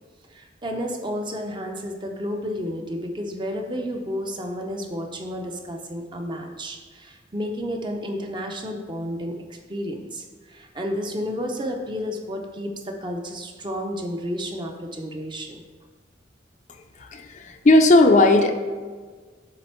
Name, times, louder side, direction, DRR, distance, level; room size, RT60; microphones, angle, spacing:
voice 1, 0.3-15.6, equal, 25° right, 3 dB, 0.6 m, -31 dB
voice 2, 17.0-18.5, left 2 dB, 40° left, 5 dB, 0.4 m, -16 dB
7.7 x 3.4 x 4.3 m, 1.5 s
head